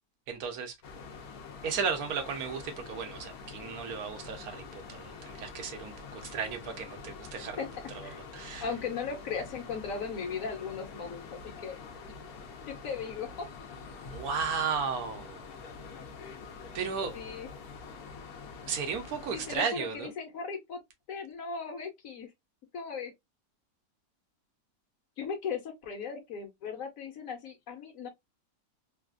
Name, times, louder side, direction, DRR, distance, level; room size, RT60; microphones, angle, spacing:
voice 1, 0.3-0.7 1.6-7.6 7.9-8.7 14.1-15.4 16.7-17.1 18.7-20.1, right 6 dB, 85° right, 1.3 m, -34 dB
sound 1, 0.8-19.6, left 5 dB, 85° left, 1.3 m, -46 dB
voice 2, 8.6-11.8 12.7-13.5 17.1-17.5 19.3-20.8 21.1-22.3 22.7-23.1 25.2-28.1, left 5 dB, 70° left, 1.3 m, -37 dB
3.4 x 2.4 x 2.3 m
omnidirectional pair, 1.5 m